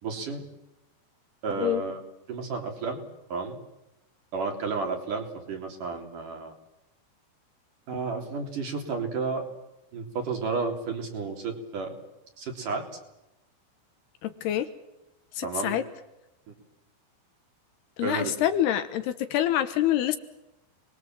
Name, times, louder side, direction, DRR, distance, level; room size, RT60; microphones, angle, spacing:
voice 1, 0.0-0.5 1.4-2.0 2.3-3.0 3.3-3.6 4.3-6.5 7.9-9.4 9.9-11.9 12.4-12.8 15.4-15.8 16.5-16.6 18.0-18.3, right 4 dB, 50° right, 2 dB, 4.8 m, -32 dB
voice 2, 14.2-14.7 15.4-15.8 18.0-20.2, left 12 dB, 75° left, 10 dB, 3.1 m, -26 dB
29.5 x 22.0 x 7.6 m, 0.92 s
omnidirectional pair, 5.0 m